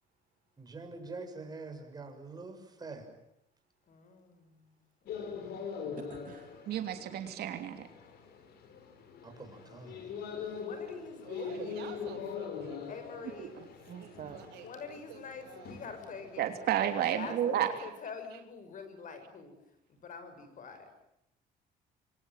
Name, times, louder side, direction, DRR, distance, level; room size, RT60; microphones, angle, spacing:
voice 1, 0.6-3.0 9.2-10.2, right 3 dB, 25° right, 3 dB, 6.6 m, -45 dB
voice 2, 3.9-4.6 10.5-11.9 12.9-13.6 14.6-19.5 19.9-20.9, left 5 dB, 50° left, 9 dB, 6.1 m, -46 dB
sound 1, 5.1-17.1, left 6 dB, 70° left, 5.3 m, -43 dB
voice 3, 6.1-6.5 13.9-14.4, right 9 dB, 55° right, 6 dB, 2.2 m, -47 dB
voice 4, 6.7-7.8 13.4-13.7 16.4-17.7, right 10 dB, 70° right, 6 dB, 3.2 m, -31 dB
voice 5, 11.2-15.7, right 9 dB, 85° right, 5 dB, 5.9 m, -50 dB
27.5 x 23.0 x 9.2 m, 0.80 s
cardioid pair, 110°, 17 cm